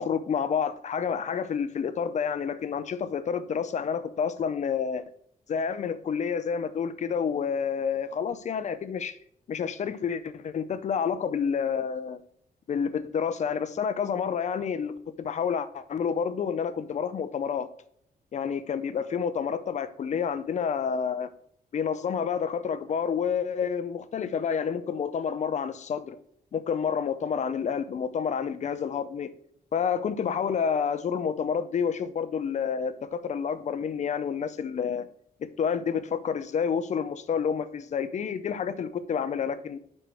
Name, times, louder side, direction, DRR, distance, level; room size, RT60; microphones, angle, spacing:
voice 1, 0.0-5.0 5.5-9.2 9.5-12.2 12.7-17.7 18.3-21.3 21.7-26.2 26.5-29.3 29.7-35.1 35.4-39.8, left 7 dB, 45° left, 0.5 m, -29 dB
6.4 x 5.4 x 4.4 m
wide cardioid pair, 170°, 17 cm